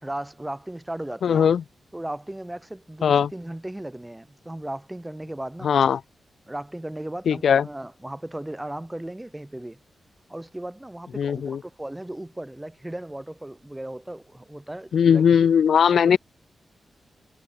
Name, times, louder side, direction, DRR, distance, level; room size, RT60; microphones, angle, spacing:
voice 1, 0.0-1.5 1.9-5.8 6.5-9.8 10.3-15.5 16.0-16.2, right 1 dB, 10° right, 3.7 m, -36 dB
voice 2, 1.2-1.6 3.0-3.3 5.6-6.0 7.3-7.6 11.2-11.6 14.9-16.2, left 7 dB, 75° left, 0.8 m, -19 dB
wide cardioid pair, 135°, 0 cm